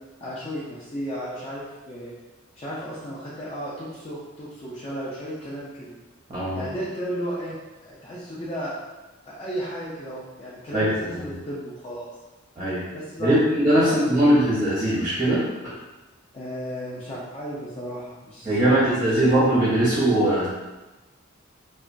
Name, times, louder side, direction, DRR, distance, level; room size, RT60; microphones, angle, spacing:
voice 1, 0.2-2.1 2.5-5.9 6.5-7.6 7.8-8.7 9.3-12.1 12.9-13.4 13.8-13.9 16.3-19.0 19.3-19.4, equal, 30° left, -8 dB, 0.5 m, -34 dB
voice 2, 6.3-6.7 10.7-10.9 11.2-11.3 12.6-12.8 13.2-15.7 18.4-20.5, right 1 dB, 20° right, -7 dB, 0.6 m, -20 dB
2.9 x 2.2 x 2.5 m, 1.1 s
head